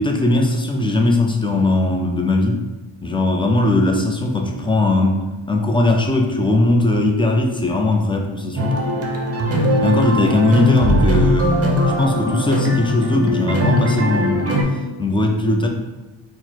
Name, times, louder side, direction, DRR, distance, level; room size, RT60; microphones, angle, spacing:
voice 1, 0.0-2.6 3.0-8.8 9.8-11.5 12.0-14.5 15.0-15.7, left 2 dB, 10° left, 2 dB, 0.3 m, -18 dB
sound 1, 8.6-14.6, equal, 30° right, 0.7 m, -20 dB
4.0 x 2.1 x 4.4 m, 1.1 s
wide cardioid pair, 120°, 48 cm